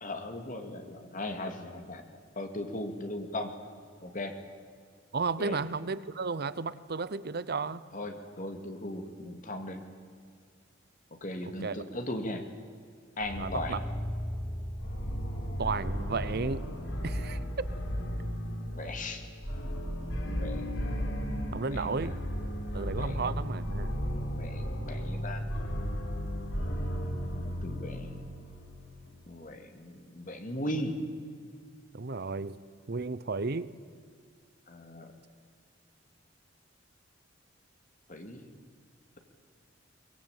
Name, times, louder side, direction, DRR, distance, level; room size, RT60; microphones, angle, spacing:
voice 1, 0.0-2.0 2.4-3.5 4.0-4.3 5.4-5.6 7.9-9.8 11.2-12.4 13.2-13.8 18.7-19.2 20.3-20.7 21.7-22.1 22.8-23.3 24.3-25.5 27.3-28.2 29.3-31.0 34.7-35.1 38.1-38.4, left 1 dB, 45° left, 5 dB, 2.5 m, -38 dB
voice 2, 5.1-7.8 11.4-11.8 13.4-13.8 15.6-16.6 17.0-17.4 21.5-22.2 22.7-23.9 31.9-32.6 32.9-33.7, right 4 dB, 55° right, 16 dB, 0.8 m, -33 dB
sound 1, 13.2-28.9, equal, 85° left, 3.9 m, -35 dB
22.0 x 21.0 x 9.0 m, 2.1 s
head